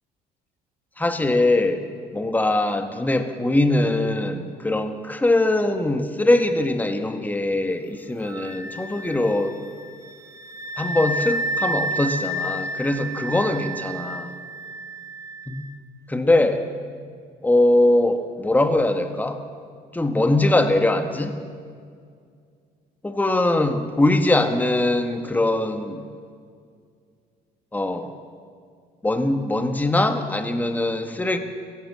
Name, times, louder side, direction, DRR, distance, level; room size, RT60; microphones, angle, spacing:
voice 1, 1.0-1.8 2.1-9.5 10.8-14.3 16.1-16.6 17.4-19.4 19.9-21.3 23.0-26.1 27.7-28.1 29.0-31.4, left 2 dB, 10° left, 7 dB, 1.6 m, -21 dB
Wind instrument woodwind instrument, 8.3-15.7, right 1 dB, 20° right, 1.2 m, -31 dB
29.0 x 17.0 x 7.6 m, 2.2 s
cardioid pair, 110°, 17 cm